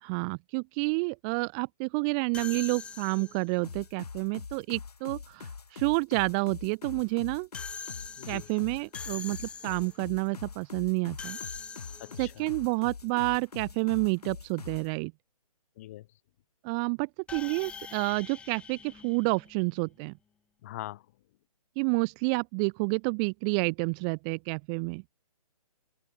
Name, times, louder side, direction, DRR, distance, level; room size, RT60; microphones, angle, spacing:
voice 1, 0.0-7.5 8.3-11.4 12.2-15.1 16.6-20.1 21.8-25.0, right 37 dB, 10° right, 0.8 m, -29 dB
sound 1, 2.3-3.6 7.5-10.1 11.2-12.4 17.3-19.8, left 6 dB, 5° left, 3.9 m, -43 dB
sound 2, 3.6-14.9, left 5 dB, 90° left, 1.8 m, -43 dB
voice 2, 12.0-12.5 15.8-16.1 20.6-21.0, left 15 dB, 25° left, 1.8 m, -42 dB
open air
hypercardioid pair, 170°, 19 cm